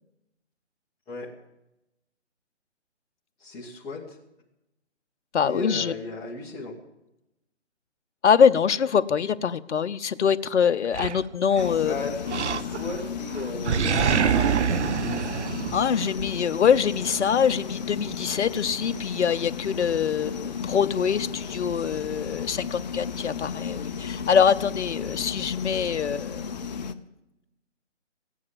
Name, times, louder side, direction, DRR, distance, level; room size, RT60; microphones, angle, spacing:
voice 1, 3.4-4.2 5.4-6.8 11.8-14.7, left 3 dB, 10° left, -6 dB, 1.5 m, -36 dB
voice 2, 5.3-5.9 8.2-12.0 15.7-26.5, left 7 dB, 70° left, 11 dB, 0.8 m, -24 dB
Animal, 10.9-11.8 12.3-13.0 13.3-16.3, right 7 dB, 65° right, 0.8 m, -26 dB
sound 1, 11.6-26.9, left 6 dB, 35° left, 0.7 m, -34 dB
16.0 x 9.6 x 7.3 m, 0.90 s
figure-of-eight pair, 150°, 36 cm